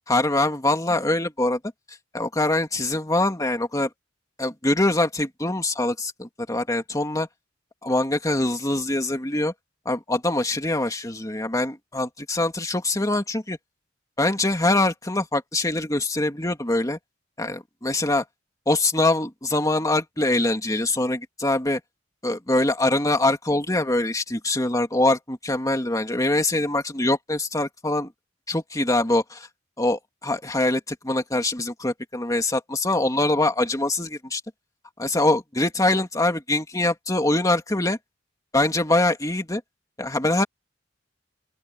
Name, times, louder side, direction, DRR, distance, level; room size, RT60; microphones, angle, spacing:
voice 1, 0.1-1.6 2.1-3.9 4.4-7.3 7.8-9.5 9.9-13.6 14.2-17.0 17.4-18.2 18.7-21.8 22.2-28.1 28.5-29.5 29.8-34.4 35.0-38.0 38.5-39.6 40.0-40.4, left 2 dB, 20° left, 2.4 m, -23 dB
open air
head